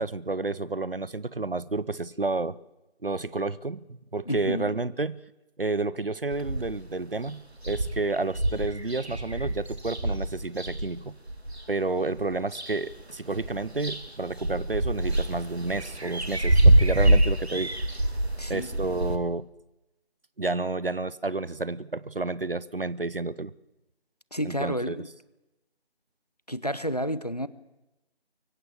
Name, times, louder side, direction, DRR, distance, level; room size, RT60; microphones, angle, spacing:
voice 1, 0.0-2.6 3.0-3.8 4.1-5.2 5.6-11.2 11.7-17.8 18.5-19.5 20.4-23.5 24.4-25.1, right 3 dB, 55° right, 20 dB, 0.8 m, -30 dB
voice 2, 4.3-4.7 18.4-18.7 24.3-25.1 26.5-27.5, equal, 35° left, 17 dB, 0.7 m, -30 dB
sound 1, 6.3-6.9 7.3-7.4 7.6-11.6 12.2-13.0 13.3-19.2, right 1 dB, 70° right, 2.4 m, -25 dB
23.5 x 15.5 x 8.5 m, 0.99 s
figure-of-eight pair, 170°, 33 cm